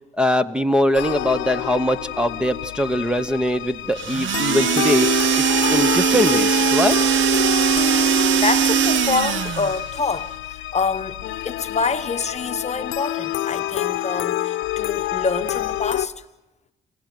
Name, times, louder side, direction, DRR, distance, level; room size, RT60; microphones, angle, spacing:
voice 1, 0.0-5.2 5.7-7.0, equal, 5° right, 0.9 m, -22 dB
sound 1, 0.9-16.1, left 14 dB, 80° left, 0.8 m, -27 dB
sound 2, 4.0-9.8, right 10 dB, 75° right, 0.9 m, -20 dB
voice 2, 8.4-16.2, left 4 dB, 35° left, 1.0 m, -26 dB
29.5 x 17.5 x 7.8 m
cardioid pair, 90°, 20 cm